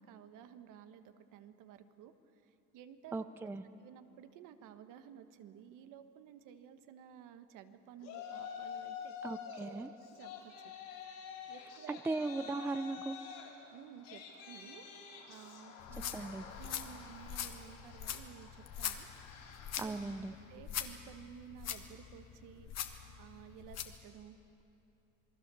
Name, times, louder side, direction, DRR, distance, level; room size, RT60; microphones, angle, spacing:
voice 1, 0.0-2.1 2.4-3.2 3.8-9.8 10.1-10.7 11.5-12.0 13.7-14.9 15.3-16.3 16.6-19.1 19.8-20.0 20.5-24.4, right 9 dB, 65° right, 9 dB, 1.5 m, -54 dB
voice 2, 3.1-3.6 9.2-9.9 11.9-13.2 16.1-16.4 19.8-20.3, right 3 dB, 5° right, 11 dB, 0.5 m, -38 dB
Yell, 8.0-9.7 10.0-20.5, left 7 dB, 70° left, 4.9 m, -49 dB
sound 1, 15.8-24.0, left 9 dB, 50° left, 1.6 m, -43 dB
27.5 x 20.0 x 7.0 m, 2.9 s
cardioid pair, 130°, 34 cm